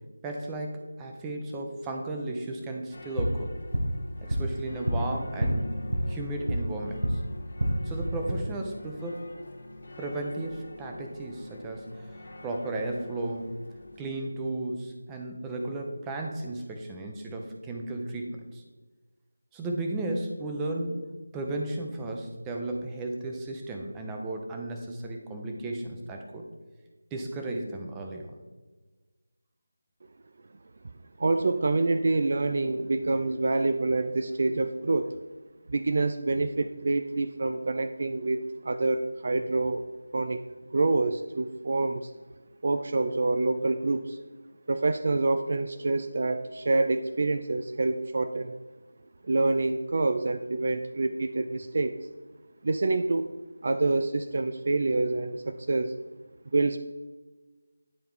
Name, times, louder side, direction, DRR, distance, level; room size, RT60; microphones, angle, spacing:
voice 1, 0.2-3.5 4.2-5.7 6.1-7.2 7.9-9.3 10.0-12.0 12.4-13.5 14.0-18.6 19.5-21.0 21.3-26.5 27.1-28.3, right 2 dB, 10° right, 2 dB, 0.7 m, -34 dB
sound 1, 2.9-14.1, left 2 dB, 55° left, 1.4 m, -46 dB
sound 2, 3.0-7.2 7.5-8.3, equal, 70° right, 1.2 m, -29 dB
voice 2, 31.2-35.2 35.7-40.4 40.7-42.1 42.6-44.2 44.7-48.6 49.2-52.0 52.6-53.4 53.6-55.9 56.5-56.8, right 3 dB, 45° right, 10 dB, 0.3 m, -27 dB
9.9 x 4.3 x 3.6 m, 1.3 s
figure-of-eight pair, 165°, 0 cm